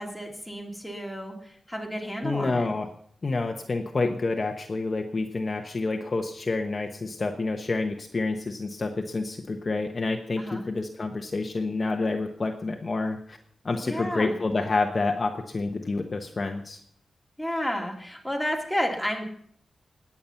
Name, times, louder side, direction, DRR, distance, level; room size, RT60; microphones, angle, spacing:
voice 1, 0.0-2.7 10.4-10.6 13.8-14.3 17.4-19.2, equal, ahead, 1 dB, 2.5 m, -31 dB
voice 2, 2.2-2.9 3.2-13.4 13.6-16.8, left 3 dB, 35° left, 4 dB, 1.1 m, -28 dB
20.0 x 8.6 x 5.7 m, 0.62 s
wide cardioid pair, 160°, 0 cm